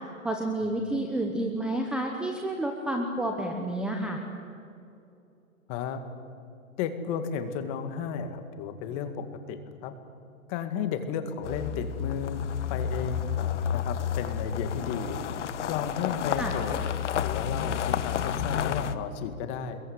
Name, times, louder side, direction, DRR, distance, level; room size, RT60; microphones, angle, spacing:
voice 1, 0.2-4.2 16.4-16.5, right 1 dB, ahead, 2 dB, 1.0 m, -30 dB
voice 2, 5.7-6.0 6.8-9.9 10.5-12.4 12.7-15.2 15.7-16.8 17.2-19.8, left 7 dB, 25° left, 8 dB, 2.0 m, -33 dB
sound 1, 11.4-18.9, left 8 dB, 55° left, 1.5 m, -30 dB
26.0 x 22.0 x 9.7 m, 2.6 s
hypercardioid pair, 160°, 41 cm